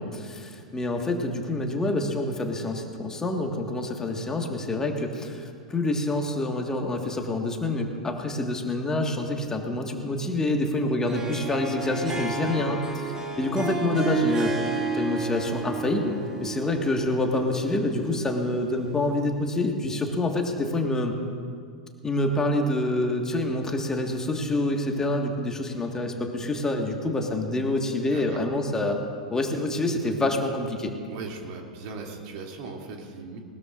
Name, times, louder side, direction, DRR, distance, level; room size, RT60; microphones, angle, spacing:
voice 1, 0.0-14.5 14.9-16.1 16.4-21.1 22.0-29.0 29.3-30.9, left 2 dB, 15° left, 2 dB, 1.6 m, -27 dB
Harp, 11.0-19.3, right 4 dB, 20° right, 2.3 m, -32 dB
voice 2, 28.1-28.4 31.1-33.4, right 4 dB, 50° right, 0 dB, 2.7 m, -38 dB
20.0 x 19.5 x 2.5 m, 2.1 s
figure-of-eight pair, 95°, 4 cm